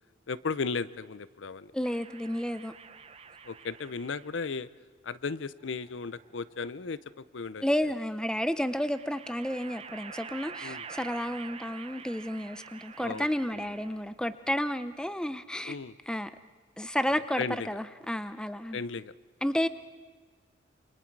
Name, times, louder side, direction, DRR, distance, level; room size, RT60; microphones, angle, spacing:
voice 1, 0.3-1.7 3.4-4.7 5.0-7.6 10.6-10.9 13.0-13.7 15.6-16.0 17.4-17.7 18.7-19.1, left 4 dB, 75° left, 17 dB, 0.6 m, -35 dB
voice 2, 1.7-2.7 7.6-15.8 16.1-16.3 16.8-18.8 19.4-19.7, equal, 5° left, 12 dB, 0.5 m, -31 dB
sound 1, 1.8-4.5 5.6-6.6 8.2-14.2, right 6 dB, 30° right, 0.8 m, -47 dB
28.0 x 25.5 x 4.7 m, 1.5 s
head